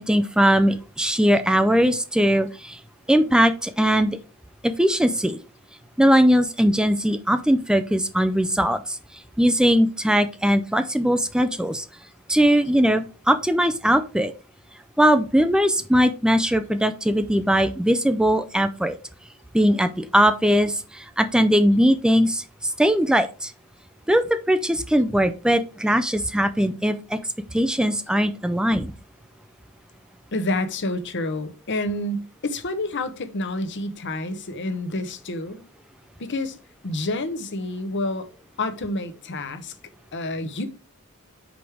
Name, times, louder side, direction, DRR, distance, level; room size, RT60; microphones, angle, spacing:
voice 1, 0.0-2.8 3.1-4.2 4.6-5.4 6.0-11.9 12.3-14.3 15.0-19.0 19.5-23.5 24.1-27.2 27.5-28.9, equal, 5° right, 0.4 m, -20 dB
voice 2, 30.3-35.6 36.2-36.6 36.8-38.3 38.6-39.7 40.1-40.7, left 2 dB, 55° left, 0.9 m, -28 dB
5.1 x 4.9 x 4.6 m
head